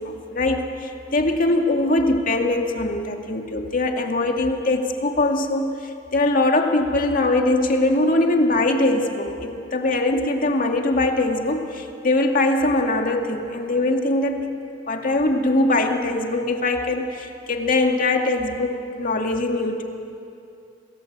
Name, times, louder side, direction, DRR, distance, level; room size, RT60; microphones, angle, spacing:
voice 1, 0.0-14.5 14.9-19.8, left 2 dB, 50° left, 3 dB, 2.3 m, -22 dB
27.5 x 20.0 x 8.2 m, 2.7 s
head